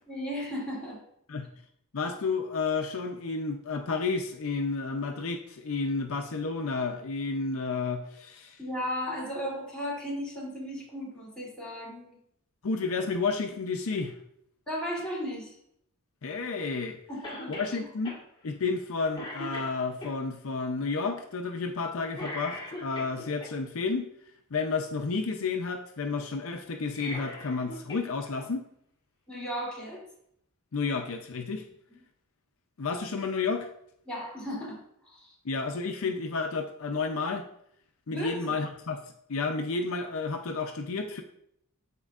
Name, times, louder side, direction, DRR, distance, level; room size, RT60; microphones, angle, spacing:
voice 1, 0.1-1.0 8.6-12.2 14.7-15.6 17.1-17.9 29.3-30.0 31.9-32.0 34.1-34.8 35.0-35.3 38.1-38.6, equal, 5° left, -7 dB, 2.9 m, -35 dB
voice 2, 1.9-8.6 12.6-14.1 16.2-17.0 17.5-18.2 18.4-24.1 24.5-28.7 30.7-31.6 32.8-33.7 35.4-37.4 38.1-39.0 39.3-41.2, left 4 dB, 65° left, 5 dB, 0.6 m, -31 dB
Cough, 17.2-17.7 18.1-18.2 18.7-18.9 19.1-20.1 22.1-23.5 26.8-28.1 28.4-28.5 29.6-29.7, left 1 dB, 20° left, 1.7 m, -39 dB
12.5 x 4.4 x 2.4 m, 0.73 s
head